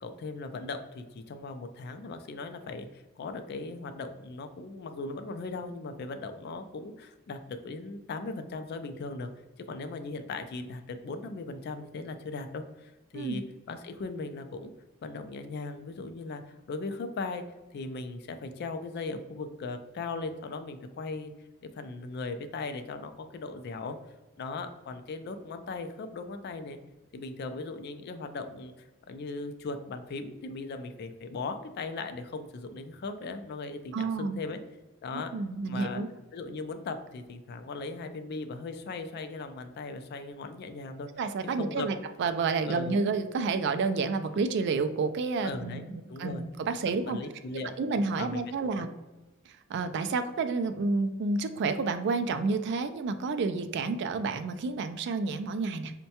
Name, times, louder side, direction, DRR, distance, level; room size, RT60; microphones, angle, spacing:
voice 1, 0.0-9.3 9.6-13.4 13.7-14.7 15.0-17.5 17.7-21.3 21.6-24.0 24.4-26.8 27.1-34.6 35.0-35.3 35.7-36.0 36.3-41.1 41.4-41.9 42.6-43.0 45.4-45.8 46.1-46.4 47.1-47.8 48.2-48.9, left 3 dB, 50° left, 9 dB, 0.3 m, -38 dB
voice 2, 33.9-34.4 35.1-36.1 41.2-45.9 46.2-47.2 47.8-48.9 49.7-55.9, right 4 dB, 55° right, 9 dB, 0.3 m, -30 dB
5.3 x 2.2 x 2.8 m, 1.1 s
head